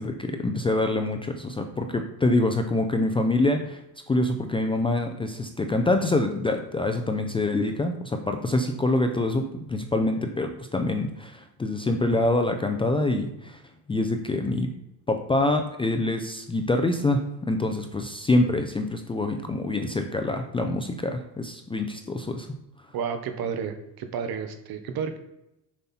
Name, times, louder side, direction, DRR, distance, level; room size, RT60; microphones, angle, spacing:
voice 1, 0.0-3.8 4.1-9.4 9.7-13.6 13.9-14.7 15.1-22.5, left 2 dB, 15° left, 4 dB, 0.4 m, -25 dB
voice 2, 22.9-25.2, right 6 dB, 60° right, 8 dB, 1.1 m, -31 dB
7.3 x 5.6 x 4.2 m, 0.85 s
cardioid pair, 150°, 41 cm